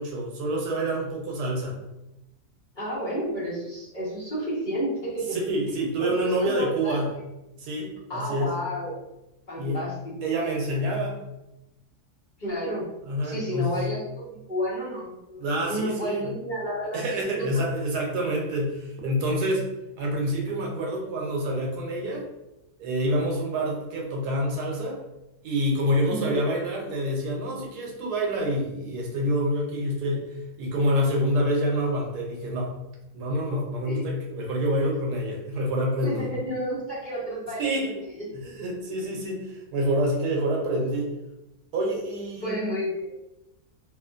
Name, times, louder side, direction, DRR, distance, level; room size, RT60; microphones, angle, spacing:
voice 1, 0.0-1.8 5.3-7.1 7.6-8.6 9.6-9.8 10.2-11.2 13.1-13.8 15.4-16.4 16.9-19.7 20.0-22.3 22.8-25.0 25.4-30.3 30.6-32.7 33.1-36.2 37.6-38.0 38.3-41.1 41.7-42.6, equal, 85° right, -1 dB, 1.3 m, -27 dB
voice 2, 2.7-5.4 5.7-7.0 8.1-8.9 9.5-9.9 12.4-12.9 13.2-17.5 26.1-26.4 33.8-34.1 36.0-38.2 42.4-43.1, equal, 35° left, -10 dB, 1.2 m, -31 dB
3.0 x 2.4 x 2.5 m, 0.93 s
omnidirectional pair, 1.7 m